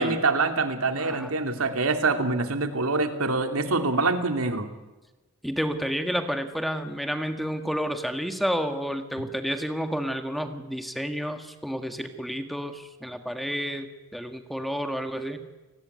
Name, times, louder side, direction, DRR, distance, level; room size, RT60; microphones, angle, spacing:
voice 1, 0.0-4.7, right 3 dB, 85° right, 6 dB, 2.6 m, -25 dB
voice 2, 0.9-1.3 5.4-15.5, equal, ahead, 6 dB, 1.6 m, -30 dB
29.0 x 19.5 x 9.6 m, 1.1 s
head